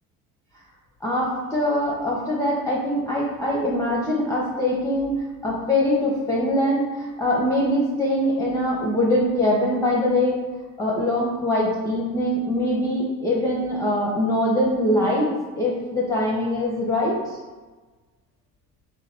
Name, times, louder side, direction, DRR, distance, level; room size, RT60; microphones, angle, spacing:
voice 1, 1.0-10.4 10.8-15.3 15.6-17.4, left 1 dB, 5° left, -5 dB, 0.5 m, -23 dB
3.1 x 2.3 x 4.1 m, 1.3 s
figure-of-eight pair, 55°, 46 cm